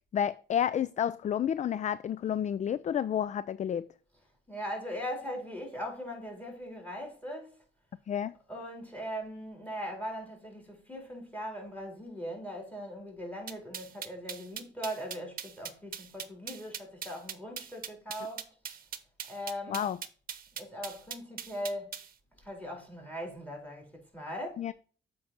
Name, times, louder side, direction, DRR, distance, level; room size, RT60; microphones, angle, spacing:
voice 1, 0.1-3.9 8.1-8.3 19.7-20.0 24.6-24.7, left 9 dB, 35° left, 0.4 m, -30 dB
voice 2, 4.5-7.6 8.5-18.5 19.3-19.9 20.5-22.0 22.4-24.6, equal, 5° left, 4.1 m, -40 dB
sound 1, 13.5-22.1, right 8 dB, 45° right, 1.0 m, -40 dB
7.8 x 5.3 x 4.4 m
cardioid pair, 90°, 20 cm